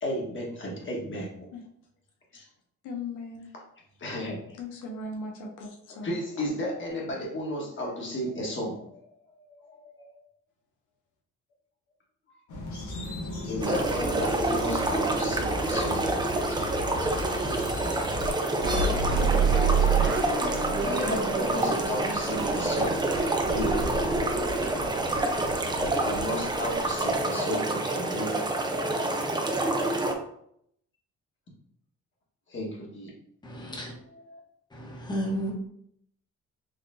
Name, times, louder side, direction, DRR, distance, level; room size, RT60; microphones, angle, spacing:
voice 1, 0.0-1.3 2.3-2.5 4.0-4.4 6.0-9.0 9.3-10.1 13.5-16.0 20.8-23.0 23.5-23.8 25.9-28.4 32.5-33.1 34.3-34.4, left 1 dB, 40° left, -2 dB, 1.5 m, -33 dB
voice 2, 2.8-3.5 4.5-6.2, left 2 dB, 90° left, 0 dB, 0.7 m, -38 dB
sound 1, 12.5-18.3, left 1 dB, 70° left, 1.1 m, -36 dB
sound 2, 13.6-30.1, right 2 dB, 15° right, 0.5 m, -28 dB
sound 3, 18.6-27.2, right 4 dB, 40° right, 0.9 m, -29 dB
voice 3, 33.4-33.9 34.7-35.5, equal, 15° left, -1 dB, 1.1 m, -32 dB
4.1 x 3.1 x 2.7 m, 0.71 s
cardioid pair, 90°, 30 cm